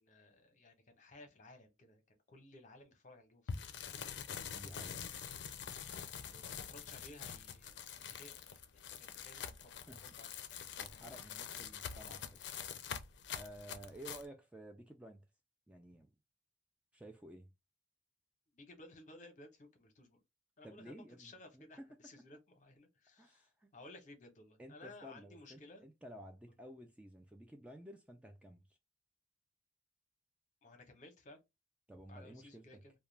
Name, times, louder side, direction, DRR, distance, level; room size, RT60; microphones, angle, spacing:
voice 1, 0.0-3.9 6.3-8.4 8.7-10.3 18.5-20.2 20.6-25.8 30.6-31.4 32.1-32.9, left 2 dB, 45° left, 0.8 m, -57 dB
sound 1, 3.5-14.3, left 7 dB, 75° left, 0.4 m, -46 dB
voice 2, 4.5-5.1 9.9-10.0 10.8-12.4 13.3-15.2 15.7-16.1 16.9-17.5 20.6-21.6 23.2-23.7 24.6-28.6 31.9-32.8, right 1 dB, 5° right, 0.3 m, -53 dB
2.3 x 2.1 x 3.1 m
head